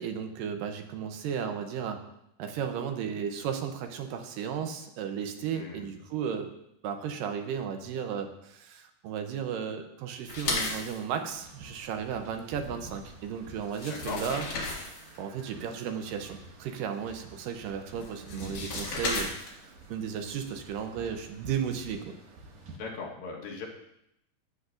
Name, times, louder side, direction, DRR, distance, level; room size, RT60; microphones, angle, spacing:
voice 1, 0.0-2.0 2.4-6.5 6.8-14.5 15.2-22.1, right 7 dB, 75° right, 6 dB, 2.3 m, -34 dB
voice 2, 5.5-6.0 13.9-14.2 18.1-18.6 22.7-23.7, left 4 dB, 80° left, -2 dB, 3.2 m, -40 dB
sound 1, 10.3-11.0 13.2-13.3 13.6-15.2 18.0-19.7, left 3 dB, 60° left, 3.3 m, -34 dB
sound 2, 11.3-22.8, right 2 dB, 60° right, 2.4 m, -48 dB
14.0 x 7.9 x 2.5 m, 0.79 s
omnidirectional pair, 4.1 m